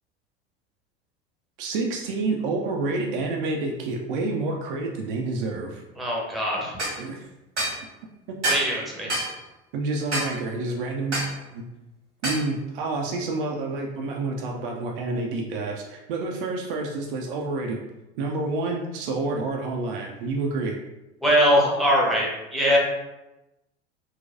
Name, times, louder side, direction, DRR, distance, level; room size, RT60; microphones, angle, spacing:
voice 1, 1.6-5.8 7.0-7.2 8.3-8.4 9.7-11.2 11.5-11.6 12.2-17.8 18.2-20.8, right 3 dB, 50° right, 0 dB, 0.5 m, -28 dB
voice 2, 6.0-6.8 8.5-9.1 21.2-22.8, equal, ahead, -3 dB, 0.8 m, -22 dB
sound 1, 6.8-7.0 7.6-7.8 8.4-8.7 9.1-9.3 10.1-10.3 11.1-11.3 12.2-12.4, right 1 dB, 85° right, 1.4 m, -26 dB
3.9 x 2.3 x 2.5 m, 0.97 s
figure-of-eight pair, 75°, 34 cm